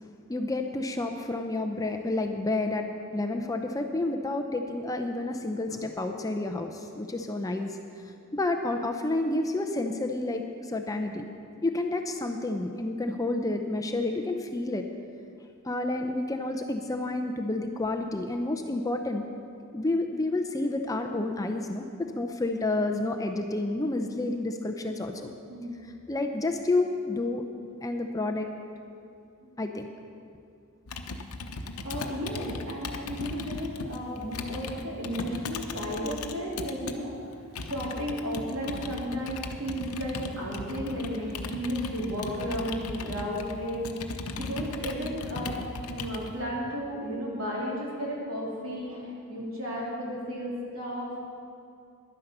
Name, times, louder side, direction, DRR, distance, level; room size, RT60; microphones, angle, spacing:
voice 1, 0.3-2.9 3.1-7.8 8.3-11.2 11.6-14.8 15.6-19.3 19.7-25.3 26.1-27.4 27.8-28.5 29.6-29.9, left 2 dB, 15° left, 4 dB, 0.5 m, -30 dB
voice 2, 25.5-25.9 29.4-29.5 31.8-37.1 37.6-43.9 44.4-45.6 45.9-51.3, equal, 65° right, -5 dB, 3.4 m, -33 dB
Computer keyboard, 30.9-37.0 37.6-46.3, left 3 dB, 85° left, 0.8 m, -37 dB
11.0 x 10.0 x 6.6 m, 2.4 s
head